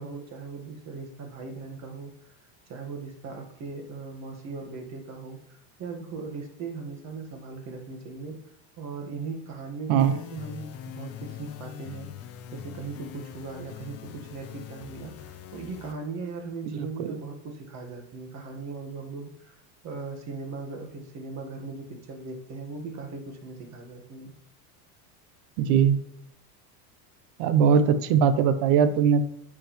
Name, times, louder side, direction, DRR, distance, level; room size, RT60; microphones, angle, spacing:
voice 1, 0.0-2.1 2.7-5.4 5.8-8.4 8.8-10.7 11.0-12.1 12.5-19.5 19.8-24.3, right 4 dB, 35° right, 3 dB, 1.5 m, -38 dB
sound 1, 10.0-15.9, left 9 dB, 30° left, 0.7 m, -42 dB
voice 2, 16.7-17.1 25.6-26.0 27.4-29.2, right 7 dB, 55° right, 12 dB, 0.9 m, -21 dB
9.7 x 7.2 x 3.1 m, 0.75 s
supercardioid pair, 145°, 47 cm